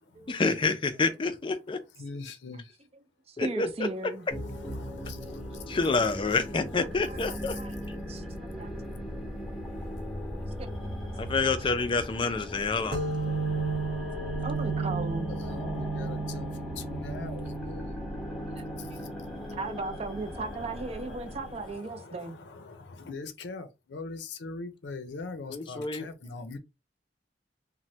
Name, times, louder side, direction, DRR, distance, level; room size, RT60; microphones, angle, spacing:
voice 1, 0.3-1.8 3.4-3.7 5.7-7.5 11.2-13.0 25.5-26.1, left 4 dB, 30° left, 0.4 m, -28 dB
voice 2, 2.0-2.6 4.3-6.0 6.3-6.5 7.2-7.6 10.6-11.5 13.3-13.5 15.3-17.8 19.3-19.8 20.2-26.6, left 3 dB, 85° left, 0.6 m, -43 dB
voice 3, 3.3-4.3 6.7-7.7 8.1-8.7 10.4-10.5 11.4-11.5 14.4-15.3 18.0-18.2 18.5-18.6 19.5-22.4, right 3 dB, 35° right, 0.5 m, -37 dB
sound 1, 4.3-21.8, equal, ahead, 0.8 m, -38 dB
sound 2, 12.9-20.2, right 4 dB, 70° right, 0.8 m, -34 dB
3.1 x 2.1 x 2.7 m
head